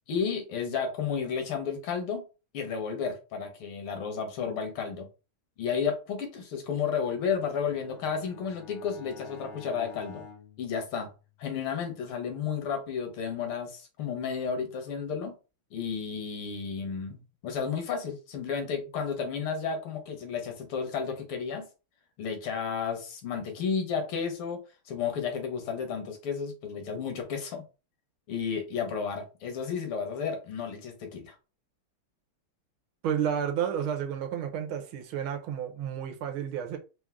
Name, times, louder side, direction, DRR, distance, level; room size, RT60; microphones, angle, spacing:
voice 1, 0.1-2.3 2.5-5.1 5.6-10.3 10.6-11.1 11.4-15.3 15.7-21.7 22.2-24.6 24.9-27.7 28.3-31.4, left 6 dB, 75° left, 1.9 m, -32 dB
Bowed string instrument, 7.0-11.6, left 6 dB, 55° left, 1.0 m, -50 dB
voice 2, 33.0-36.8, right 8 dB, 75° right, 1.6 m, -31 dB
4.5 x 2.5 x 3.6 m
omnidirectional pair, 2.4 m